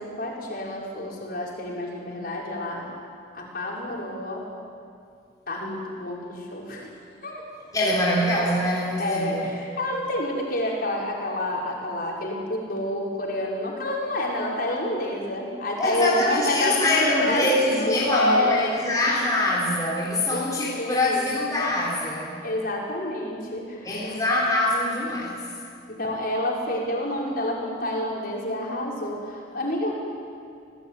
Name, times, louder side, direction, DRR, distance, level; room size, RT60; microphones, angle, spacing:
voice 1, 0.0-2.9 3.3-4.4 5.5-6.9 7.2-7.4 9.0-18.6 20.3-21.3 22.4-24.2 25.9-29.9, left 1 dB, 50° left, -3 dB, 6.0 m, -28 dB
voice 2, 7.7-9.5 15.8-22.4 23.8-25.5, left 1 dB, 20° left, -5 dB, 3.9 m, -24 dB
28.0 x 18.5 x 9.5 m, 2.3 s
head